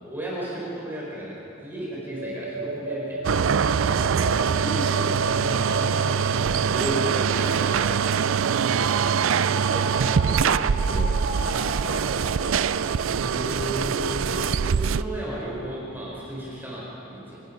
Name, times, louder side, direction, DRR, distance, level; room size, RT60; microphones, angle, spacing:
voice 1, 0.0-5.6 6.6-8.2 9.7-11.6 14.6-17.4, right 1 dB, 10° right, -6 dB, 5.0 m, -35 dB
sound 1, 1.8-15.1, right 2 dB, 60° right, 4.1 m, -36 dB
sound 2, 3.2-15.0, right 6 dB, 85° right, 0.4 m, -23 dB
voice 2, 5.4-6.9 13.0-14.3 15.2-15.7, left 1 dB, 35° left, -5 dB, 6.3 m, -35 dB
28.0 x 17.5 x 5.7 m, 3.0 s
head